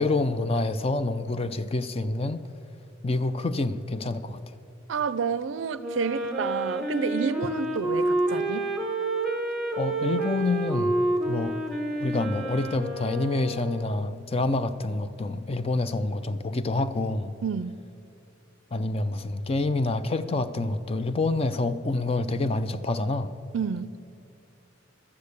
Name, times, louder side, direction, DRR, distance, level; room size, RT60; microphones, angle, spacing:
voice 1, 0.0-2.4 3.0-4.5 9.7-11.0 11.3-11.6 12.0-17.3 18.7-23.3, left 2 dB, 30° left, 0.4 m, -27 dB
voice 2, 4.9-8.7 17.4-17.8 23.5-24.0, right 6 dB, 65° right, 0.4 m, -29 dB
Wind instrument woodwind instrument, 5.8-14.2, right 2 dB, ahead, 1.2 m, -29 dB
12.5 x 8.6 x 8.2 m
head